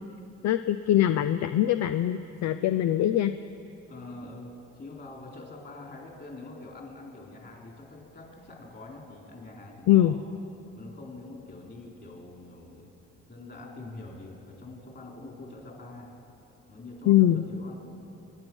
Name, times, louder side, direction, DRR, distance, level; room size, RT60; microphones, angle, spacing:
voice 1, 0.4-3.3 9.9-10.2 17.1-17.4, left 12 dB, 65° left, 10 dB, 0.5 m, -22 dB
voice 2, 3.9-10.1 10.8-12.9 13.3-16.1 16.7-17.8, left 2 dB, 35° left, -1 dB, 3.9 m, -45 dB
23.5 x 9.9 x 6.2 m, 2.9 s
cardioid pair, 90°, 30 cm